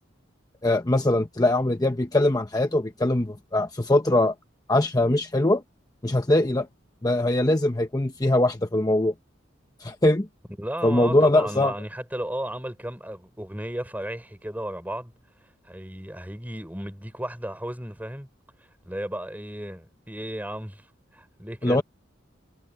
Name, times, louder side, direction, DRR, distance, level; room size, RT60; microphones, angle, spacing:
voice 1, 0.6-4.3 4.7-5.6 6.0-6.7 7.0-9.1 9.8-10.3 10.8-11.7 21.6-21.8, left 1 dB, 20° left, 0.9 m, -22 dB
voice 2, 10.6-15.1 15.6-18.3 18.8-20.9 21.1-21.8, right 1 dB, 10° right, 4.7 m, -34 dB
head